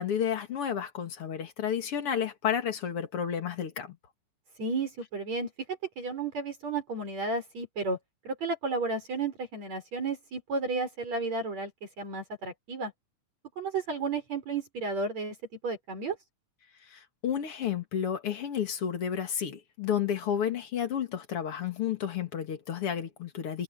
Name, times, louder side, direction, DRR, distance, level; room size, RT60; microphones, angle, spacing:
voice 1, 0.0-4.0 16.9-23.6, left 8 dB, 50° left, 2.8 m, -31 dB
voice 2, 4.6-8.0 8.3-11.7 12.0-12.9 13.6-15.4 15.6-16.2, right 3 dB, 65° right, 7.5 m, -32 dB
omnidirectional pair, 3.4 m